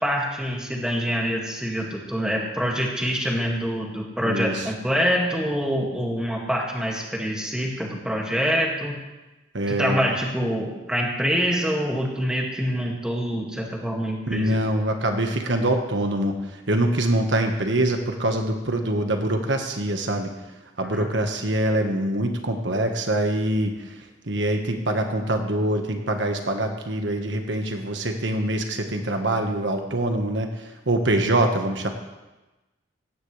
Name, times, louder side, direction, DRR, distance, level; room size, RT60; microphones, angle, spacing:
voice 1, 0.0-9.0 9.7-14.6 20.9-21.1, equal, 5° right, -1 dB, 2.1 m, -25 dB
voice 2, 4.2-4.7 9.5-10.0 14.3-20.3 20.8-31.9, right 1 dB, 75° right, 4 dB, 1.4 m, -24 dB
17.0 x 15.5 x 3.3 m, 1.1 s
head